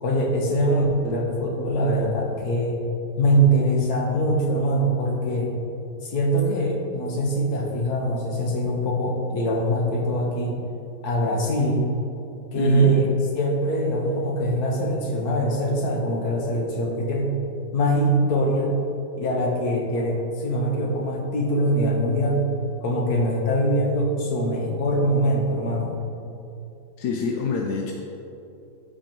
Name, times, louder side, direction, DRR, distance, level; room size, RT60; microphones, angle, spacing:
voice 1, 0.0-2.8 3.2-5.5 6.0-10.6 11.0-11.8 12.5-13.1 13.4-17.3 17.7-18.7 19.2-22.4 22.8-25.9, right 1 dB, 75° left, -1 dB, 1.7 m, -23 dB
voice 2, 12.5-12.9 27.0-27.9, left 5 dB, 90° left, 0 dB, 1.2 m, -26 dB
13.0 x 5.0 x 3.0 m, 2.8 s
omnidirectional pair, 1.7 m